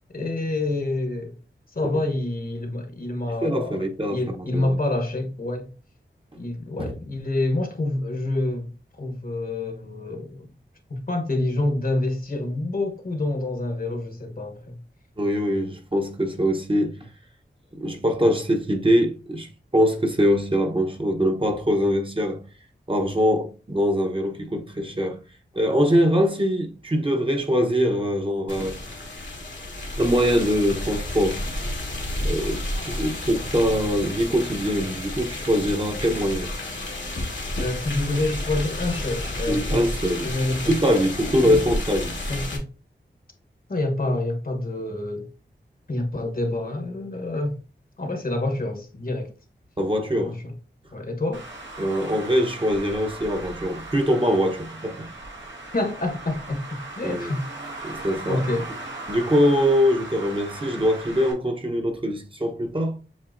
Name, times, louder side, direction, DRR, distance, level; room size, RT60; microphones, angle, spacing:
voice 1, 0.1-1.3 1.7-3.8 4.1-5.7 6.4-8.7 9.0-10.5 10.9-14.8 37.6-39.9 40.2-40.7 42.3-42.7 43.7-45.3 45.9-47.6 48.0-49.3 50.1-50.5 50.9-51.4 55.7-57.4 58.3-58.7, left 2 dB, 50° left, 1.0 m, -27 dB
voice 2, 3.4-4.8 6.8-6.9 15.2-17.1 17.8-22.5 22.9-25.2 25.5-28.8 30.0-31.4 32.2-36.5 39.5-40.3 40.7-42.2 49.8-50.4 51.8-55.1 57.0-57.3 57.8-58.4 59.1-63.0, equal, 25° right, 0.9 m, -23 dB
sound 1, 28.5-42.6, left 1 dB, 75° left, 1.3 m, -31 dB
Traffic noise roadway noise, 51.3-61.3, right 2 dB, 80° right, 1.3 m, -38 dB
7.4 x 2.8 x 2.5 m
wide cardioid pair, 70°, 19 cm